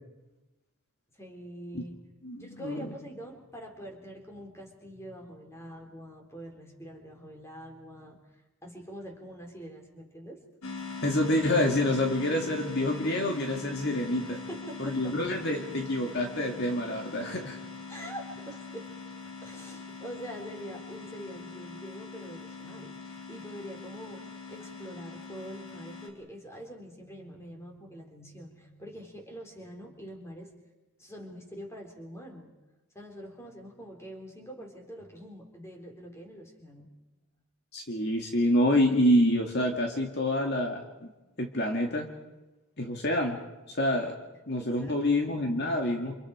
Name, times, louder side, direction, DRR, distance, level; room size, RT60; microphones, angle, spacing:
voice 1, 1.1-1.9 2.4-8.2 8.6-10.4 14.3-15.2 17.9-18.9 19.4-30.5 31.0-32.5 32.9-36.9 44.6-45.0, equal, 10° left, 2 dB, 3.9 m, -44 dB
voice 2, 2.2-2.9 11.0-14.4 14.8-17.6 37.7-41.1 41.4-42.1 42.8-43.4 43.7-44.1 44.5-46.1, left 1 dB, 50° left, 2 dB, 2.1 m, -27 dB
sound 1, 10.6-26.1, left 4 dB, 80° left, 4.1 m, -42 dB
29.0 x 27.5 x 5.0 m, 1.1 s
head